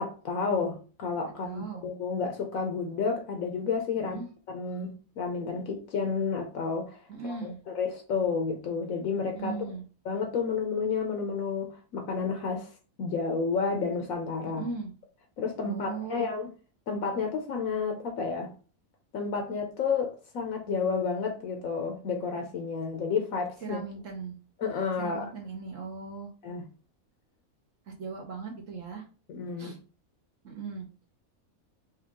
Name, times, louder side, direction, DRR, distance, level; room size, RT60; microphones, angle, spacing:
voice 1, 0.0-4.2 4.5-9.5 10.0-12.7 13.0-14.6 15.4-16.5 16.9-18.5 19.1-23.8 24.6-25.3 26.4-26.7 29.3-29.8, left 5 dB, 75° left, 1.1 m, -31 dB
voice 2, 1.4-1.9 4.0-4.3 7.1-7.6 9.3-9.8 14.4-14.9 15.6-16.3 23.6-24.3 25.0-26.3 27.9-29.1 29.6-29.8 30.4-30.9, right 4 dB, 60° right, 1.2 m, -38 dB
4.5 x 2.3 x 3.6 m
omnidirectional pair, 1.5 m